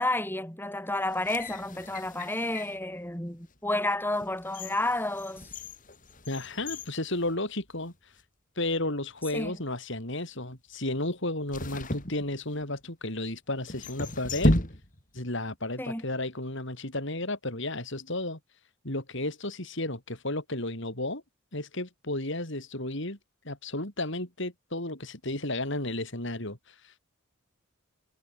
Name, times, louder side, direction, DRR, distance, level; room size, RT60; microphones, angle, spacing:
voice 1, 0.0-5.5 9.3-9.5 15.8-16.0, left 2 dB, 10° left, 7.7 m, -31 dB
sound 1, 1.1-2.8 3.5-3.6 4.1-7.9 8.2-8.3 9.1-9.5 11.5-12.8 13.6-15.2 15.5-15.6, left 1 dB, 40° left, 5.5 m, -33 dB
voice 2, 6.3-7.9 8.6-14.6 15.1-18.4 18.8-21.2 21.5-23.2 23.5-27.0, left 2 dB, 60° left, 5.3 m, -33 dB
head